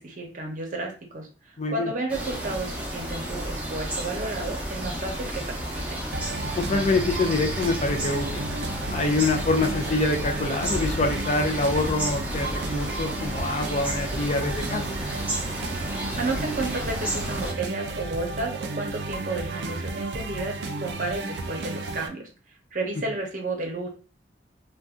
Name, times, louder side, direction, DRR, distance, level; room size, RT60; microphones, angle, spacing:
voice 1, 0.0-6.0 16.2-22.3 22.7-23.9, right 2 dB, 45° right, 1 dB, 0.8 m, -32 dB
voice 2, 1.6-1.9 6.5-8.5 8.9-14.9, left 3 dB, 35° left, 4 dB, 0.4 m, -25 dB
sound 1, 2.1-17.5, right 1 dB, 10° right, 0.7 m, -32 dB
sound 2, 6.1-22.1, right 2 dB, 75° right, 0.4 m, -33 dB
2.6 x 2.2 x 3.5 m, 0.36 s
head